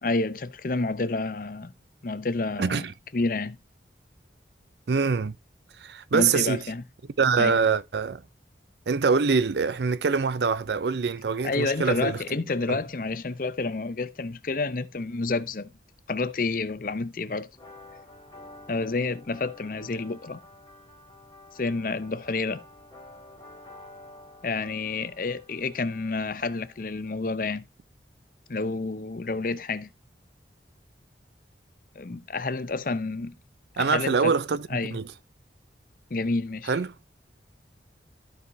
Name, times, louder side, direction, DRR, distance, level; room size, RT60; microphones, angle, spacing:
voice 1, 0.0-1.7 2.0-2.8 3.1-3.6 6.1-6.8 7.4-7.6 11.4-15.7 16.1-17.5 18.7-20.4 21.5-22.6 24.4-27.7 28.5-29.9 32.0-33.4 33.8-34.3 34.7-35.0 36.1-36.7, left 3 dB, 50° left, 0.6 m, -29 dB
voice 2, 2.6-2.9 4.9-5.3 5.8-6.6 7.2-8.2 8.9-12.2 12.7-12.8 33.8-35.1 36.7-36.9, right 5 dB, 70° right, 0.5 m, -24 dB
sound 1, 17.5-27.1, left 2 dB, 25° left, 2.5 m, -50 dB
14.0 x 4.8 x 2.7 m
head